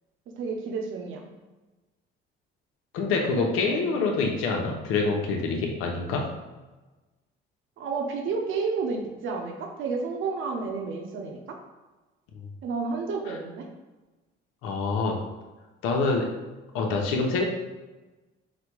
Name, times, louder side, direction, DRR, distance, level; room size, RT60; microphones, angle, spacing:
voice 1, 0.4-1.3 3.3-3.8 7.8-11.6 12.6-13.7, right 4 dB, 70° right, 2 dB, 0.8 m, -31 dB
voice 2, 2.9-6.3 14.6-15.2 15.8-16.3 16.7-17.4, left 4 dB, 85° left, 1 dB, 0.7 m, -26 dB
4.1 x 2.2 x 4.6 m, 1.2 s
cardioid pair, 95°, 21 cm